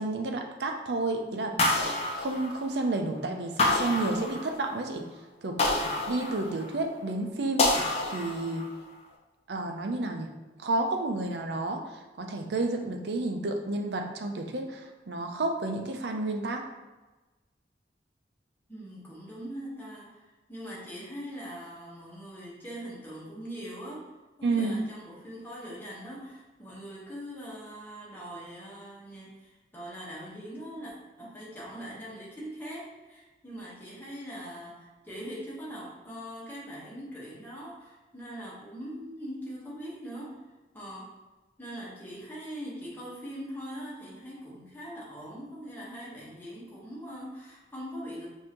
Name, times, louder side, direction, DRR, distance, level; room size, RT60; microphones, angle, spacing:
voice 1, 0.0-1.6 2.2-5.1 5.4-5.6 6.1-7.7 8.1-8.7 9.5-10.3 10.6-11.8 12.2-16.6 24.4-24.8, right 2 dB, 75° right, 4 dB, 0.5 m, -30 dB
sound 1, 1.6-2.9 3.6-4.8 5.6-6.8 7.6-8.8, left 2 dB, 35° left, 0.5 m, -28 dB
voice 2, 18.7-24.1 24.4-40.4 40.7-41.2 41.6-48.3, equal, 10° left, -7 dB, 1.1 m, -42 dB
5.4 x 2.7 x 2.9 m, 1.1 s
head